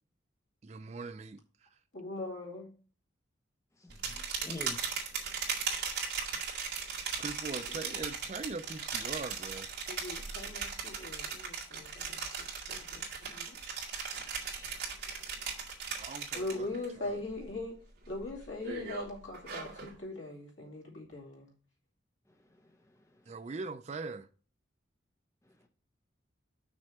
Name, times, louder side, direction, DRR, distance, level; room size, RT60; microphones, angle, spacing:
voice 1, 0.6-1.7 7.2-9.7 16.0-16.7 17.0-17.2 23.3-24.3, right 4 dB, 35° right, 0.4 m, -41 dB
voice 2, 1.9-2.7 7.7-7.8 9.9-12.2 12.7-13.6 16.3-17.8 18.1-21.5, left 2 dB, 75° left, 2.5 m, -41 dB
voice 3, 3.8-4.8 6.9-7.2 14.1-14.8 22.5-22.6, left 1 dB, 15° left, 0.6 m, -47 dB
sound 1, 3.9-16.9 17.2-17.6 18.0-19.9, right 6 dB, 55° right, 2.1 m, -38 dB
6.2 x 4.4 x 6.5 m
head